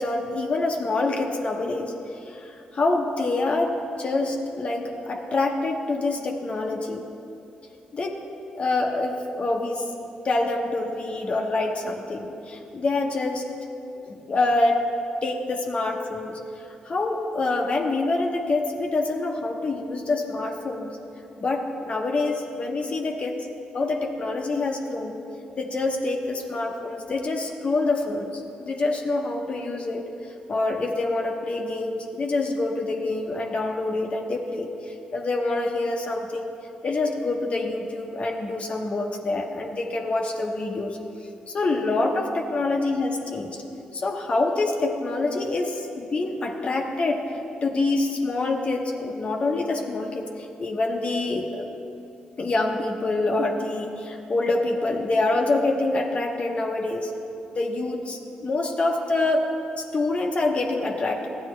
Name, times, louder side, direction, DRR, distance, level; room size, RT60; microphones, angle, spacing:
voice 1, 0.0-7.0 7.9-8.2 8.5-9.9 10.2-13.5 14.0-14.8 15.2-16.4 16.8-21.0 21.4-23.3 23.7-25.2 25.6-30.0 30.5-36.5 36.8-41.0 41.5-43.6 43.9-47.3 47.6-51.7 52.4-57.1 57.5-59.5 59.8-61.3, left 2 dB, 45° left, 2 dB, 0.9 m, -26 dB
13.0 x 8.9 x 3.2 m, 2.7 s
cardioid pair, 70°, 3 cm